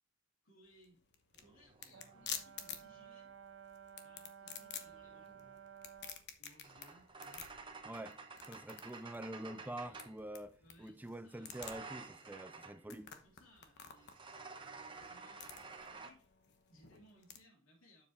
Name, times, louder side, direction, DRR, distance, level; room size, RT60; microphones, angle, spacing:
voice 1, 0.4-1.0 1.4-3.3 4.0-5.4 6.4-7.5 9.8-11.7 13.1-14.4 15.0-18.0, equal, 75° left, 3.3 m, -66 dB
sound 1, 0.7-17.4, left 8 dB, 55° left, 1.1 m, -51 dB
sound 2, 1.3-3.5 4.7-10.2 11.4-12.8 14.0-16.1, right 4 dB, 25° right, 1.1 m, -52 dB
Brass instrument, 1.9-6.3, right 8 dB, 75° right, 0.6 m, -55 dB
voice 2, 7.8-8.2 8.5-10.5 10.8-13.1, right 1 dB, 10° right, 0.3 m, -46 dB
7.4 x 7.2 x 3.2 m
head